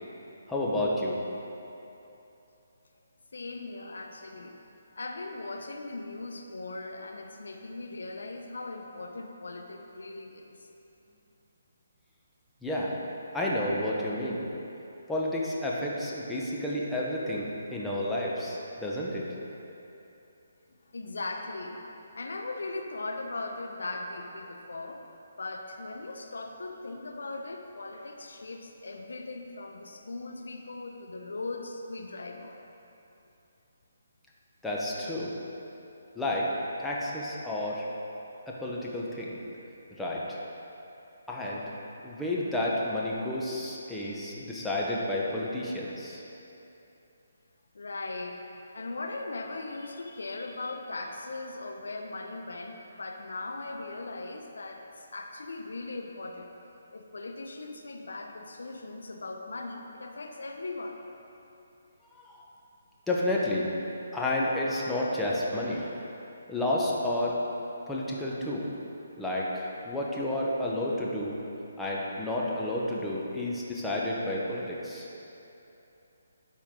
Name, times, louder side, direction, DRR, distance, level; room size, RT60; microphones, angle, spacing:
voice 1, 0.5-1.2 12.6-12.9 13.3-14.4 15.1-19.2 34.6-35.3 36.2-36.5 36.8-37.8 38.5-39.4 39.9-40.4 41.3-41.6 42.0-46.2 62.1-62.4 63.1-63.7 64.1-66.0 66.5-67.3 67.9-68.7 69.2-71.4 71.8-75.1, left 1 dB, 5° left, -6 dB, 1.0 m, -31 dB
voice 2, 3.3-4.6 5.0-10.6 20.9-21.8 22.1-25.0 25.4-32.6 47.7-48.4 48.7-56.5 56.9-61.0, left 2 dB, 75° left, 3 dB, 0.8 m, -39 dB
12.0 x 4.6 x 3.8 m, 2.9 s
hypercardioid pair, 150°, 0 cm